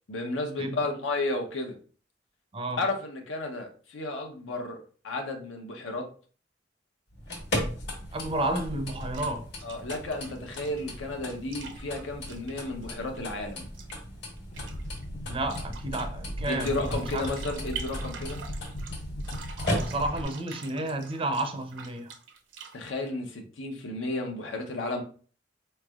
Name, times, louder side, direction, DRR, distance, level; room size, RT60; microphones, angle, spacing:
voice 1, 0.1-1.8 2.8-4.8 5.0-6.1 9.6-13.7 16.5-18.4 22.7-25.0, left 2 dB, 85° left, 0.8 m, -33 dB
voice 2, 2.5-2.8 8.1-9.5 15.3-17.3 19.6-22.1, right 2 dB, 30° right, 0.5 m, -31 dB
sound 1, 7.1-20.3, left 1 dB, 60° left, 1.3 m, -37 dB
sound 2, 9.0-9.4 9.7-13.3 13.6-13.9 14.4-15.1 15.5-16.1 16.4-18.9 19.2-23.0, right 6 dB, 80° right, 0.7 m, -45 dB
sound 3, 14.5-20.2, equal, 40° left, 0.5 m, -38 dB
4.2 x 3.2 x 2.3 m
head